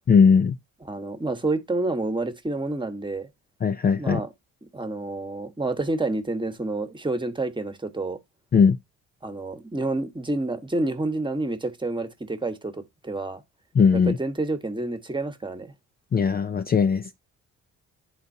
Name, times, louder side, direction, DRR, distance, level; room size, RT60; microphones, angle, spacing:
voice 1, 0.1-0.5 3.6-4.2 8.5-8.8 13.7-14.2 16.1-17.1, left 6 dB, 30° left, 0.5 m, -19 dB
voice 2, 0.8-3.3 3.9-4.3 4.6-8.2 9.2-13.4 13.9-15.7, right 2 dB, 15° right, 1.3 m, -29 dB
11.0 x 4.0 x 2.7 m
cardioid pair, 90°, 30 cm